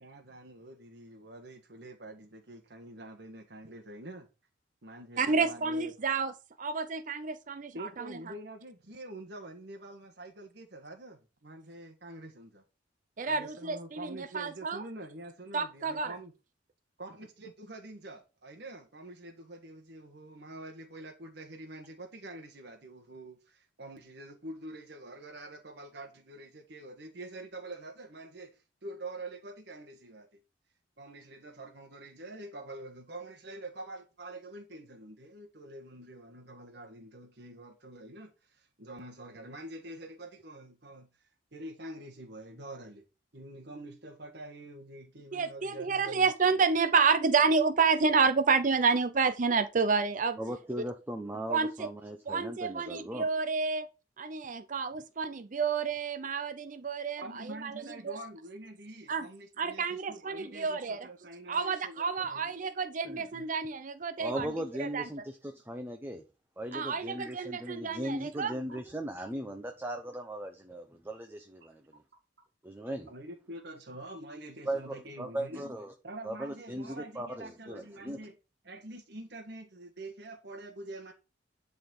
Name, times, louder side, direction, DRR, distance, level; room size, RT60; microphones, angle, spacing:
voice 1, 0.0-4.3 4.8-5.9 7.7-12.6 13.2-16.3 17.0-30.4 31.0-41.1 41.5-43.1 43.3-46.3 57.2-62.5 63.3-63.5 68.7-68.8 71.6-71.7 73.1-75.6 76.0-78.3 78.6-81.1, right 1 dB, 60° right, 1.6 m, -46 dB
voice 2, 5.2-6.3 6.6-8.2 13.2-14.8 15.5-16.2 45.3-50.4 51.5-51.9 52.3-53.9 54.2-57.7 58.0-58.2 59.1-59.3 59.6-61.0 61.5-64.5 64.8-65.0 66.7-68.5, right 5 dB, 45° right, 0.6 m, -29 dB
voice 3, 50.4-53.3 63.1-63.3 64.2-66.2 66.6-71.8 72.6-73.1 74.7-75.9 76.2-78.2, right 1 dB, 10° right, 0.8 m, -38 dB
11.0 x 4.2 x 5.4 m
head